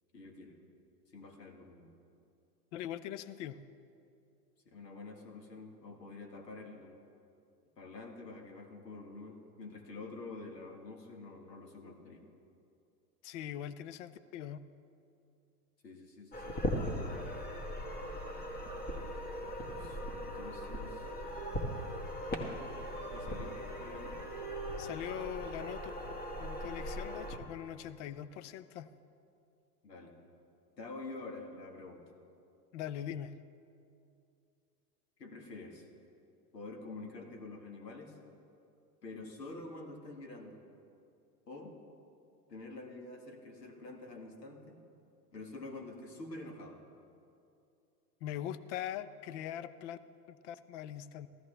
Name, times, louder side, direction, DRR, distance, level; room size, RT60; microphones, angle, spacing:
voice 1, 0.1-0.6 1.1-1.9 4.7-7.0 7.8-12.3 15.8-16.6 19.4-21.1 23.1-24.2 29.8-30.1 30.8-32.0 35.2-35.9 36.5-38.2 39.0-40.6 41.5-41.8 42.5-44.8 45.3-46.8, left 2 dB, 90° left, 2 dB, 1.8 m, -47 dB
voice 2, 2.7-3.6 13.2-14.6 24.8-25.9 26.4-28.9 32.7-33.3 48.2-50.0 50.3-51.3, left 11 dB, 50° left, 15 dB, 0.6 m, -41 dB
sound 1, 16.3-27.4, equal, 20° left, 1.4 m, -39 dB
15.5 x 13.0 x 3.3 m, 2.6 s
hypercardioid pair, 100°, 48 cm